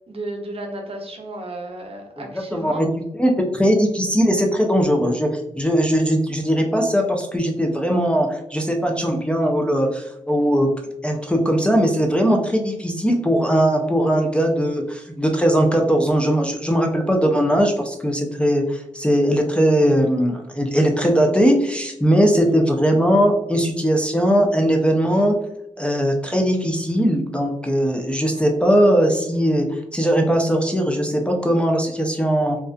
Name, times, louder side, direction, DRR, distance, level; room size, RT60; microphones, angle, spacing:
voice 1, 0.1-2.8, right 1 dB, 50° right, 2 dB, 0.6 m, -33 dB
voice 2, 2.5-2.9 3.2-10.7 11.0-25.3 25.8-32.6, equal, 10° left, 0 dB, 0.5 m, -19 dB
2.4 x 2.3 x 2.2 m, 0.87 s
supercardioid pair, 40°, 13 cm